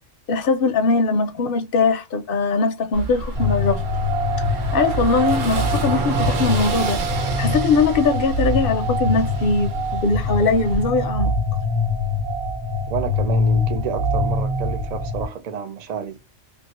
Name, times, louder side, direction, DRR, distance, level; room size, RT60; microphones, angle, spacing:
voice 1, 0.3-3.9 4.7-7.0 7.4-11.3, left 4 dB, 60° left, 0.6 m, -21 dB
Car passing by / Engine, 2.9-10.8, right 3 dB, 75° right, 1.0 m, -30 dB
sound 1, 3.4-15.2, left 2 dB, 45° right, 1.2 m, -23 dB
voice 2, 12.9-16.2, right 7 dB, 90° right, 0.3 m, -30 dB
2.6 x 2.6 x 2.9 m
omnidirectional pair, 1.4 m